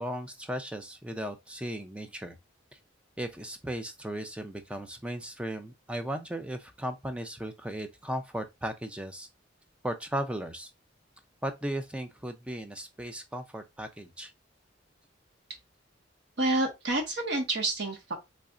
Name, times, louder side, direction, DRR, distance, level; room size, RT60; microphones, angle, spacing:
voice 1, 0.0-2.3 2.7-2.8 3.2-9.3 9.8-10.7 11.4-14.3, right 1 dB, 5° right, 0.4 m, -36 dB
voice 2, 16.4-18.1, right 2 dB, 60° right, 1.2 m, -28 dB
4.0 x 3.2 x 2.4 m
head